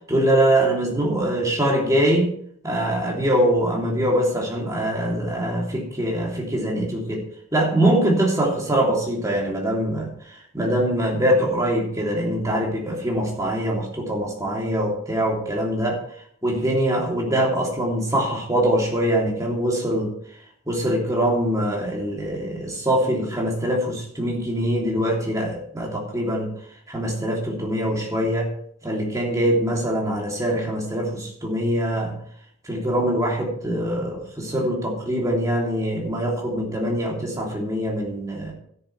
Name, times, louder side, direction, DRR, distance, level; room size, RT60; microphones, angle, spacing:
voice 1, 0.1-2.3 2.6-7.2 7.5-16.0 16.4-20.1 20.7-26.5 26.9-28.5 28.8-32.1 32.6-38.5, right 1 dB, 15° right, -2 dB, 3.0 m, -23 dB
13.0 x 11.0 x 3.3 m, 0.64 s
head